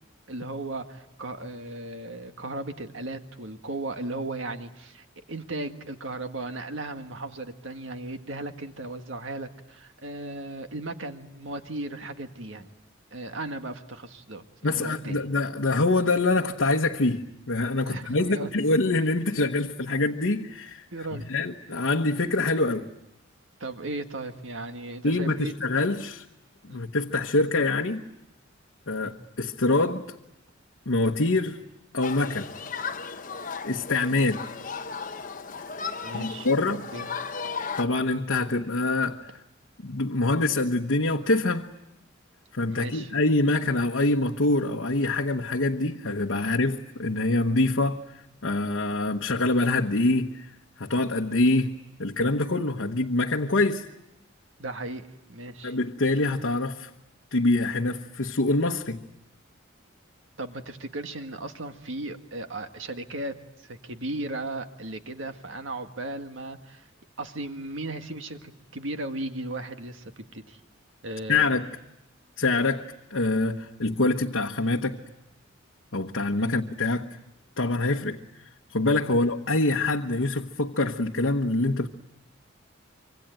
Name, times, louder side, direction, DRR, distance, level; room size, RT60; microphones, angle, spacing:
voice 1, 0.3-12.7 13.1-15.3 17.9-18.5 20.9-21.3 23.6-25.5 26.7-26.8 29.0-29.1 34.2-34.3 36.0-37.1 42.7-43.1 54.6-55.8 60.4-66.9 67.2-70.6 71.0-71.5 76.4-76.5 79.1-79.2, right 2 dB, 75° right, 1.8 m, -36 dB
voice 2, 14.6-20.8 21.3-22.9 25.0-26.2 26.7-28.0 28.9-30.0 30.9-31.6 31.9-32.5 33.6-34.4 36.1-36.8 37.8-39.3 39.8-41.7 42.5-48.0 48.4-53.9 55.6-56.9 57.3-59.0 71.3-71.7 72.4-75.0 75.9-77.1 77.6-78.2 78.7-81.9, left 2 dB, 75° left, 1.1 m, -25 dB
Human group actions, 32.0-37.8, left 5 dB, 40° left, 1.0 m, -35 dB
26.0 x 25.0 x 9.2 m
head